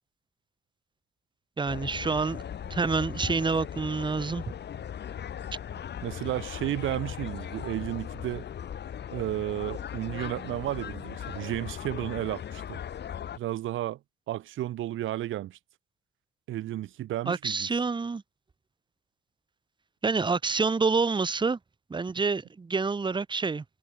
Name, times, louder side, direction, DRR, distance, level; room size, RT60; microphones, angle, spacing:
sound 1, 1.6-13.4, left 9 dB, 60° left, 3.9 m, -38 dB
voice 1, 1.6-2.4 2.7-4.5 17.3-18.2 20.0-21.6 21.9-23.6, right 4 dB, 25° right, 1.1 m, -27 dB
voice 2, 6.0-8.4 9.1-12.8 13.3-14.0 14.3-15.6 16.5-17.7, right 14 dB, 80° right, 2.7 m, -33 dB
cardioid pair, 90°, 20 cm